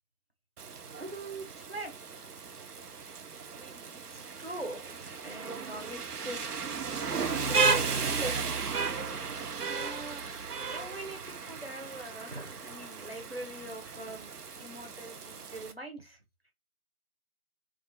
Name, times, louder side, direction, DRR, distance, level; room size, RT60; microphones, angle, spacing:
Rain, 0.6-15.7, right 4 dB, 80° right, 0.6 m, -35 dB
voice 1, 1.0-2.0 3.5-6.5 7.3-9.0 9.7-14.3 14.6-16.2, right 1 dB, 40° right, 0.6 m, -43 dB
2.4 x 2.3 x 2.6 m
figure-of-eight pair, 170°, 46 cm